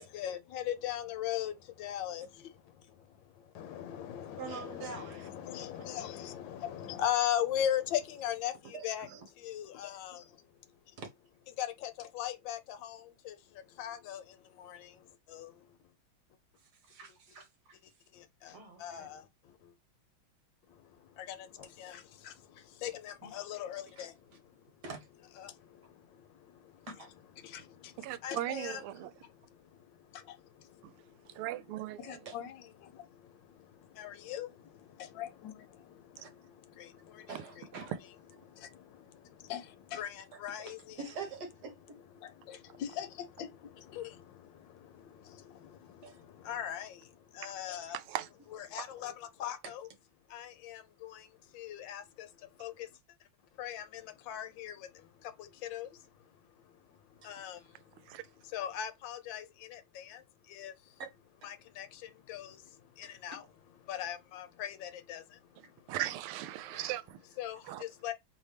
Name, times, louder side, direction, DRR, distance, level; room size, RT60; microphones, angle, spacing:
voice 1, 0.0-11.0 11.5-15.9 18.1-19.7 20.7-24.8 25.4-27.1 27.4-31.5 32.0-37.9 38.4-41.1 42.2-48.0 48.5-49.9 50.3-53.0 53.5-61.0 61.4-63.5 63.8-65.9 67.4-68.1, left 10 dB, 70° left, 1.3 m, -41 dB
voice 2, 4.4-5.3 8.7-9.2 11.0-11.1 16.6-17.8 18.5-19.1 24.0-24.1 24.8-25.1 27.0-27.1 32.2-32.3 36.2-36.3 37.3-37.9 40.6-42.0 46.0-46.2 57.2-57.3 61.4-61.5 63.0-63.4 65.9-66.0, right 5 dB, 55° right, 1.5 m, -45 dB
voice 3, 28.0-29.1 30.8-30.9 31.3-32.2 37.8-38.0 47.9-48.3 58.1-58.2 65.9-67.2 67.7-67.8, right 13 dB, 85° right, 1.5 m, -38 dB
4.1 x 3.5 x 3.3 m
omnidirectional pair, 2.4 m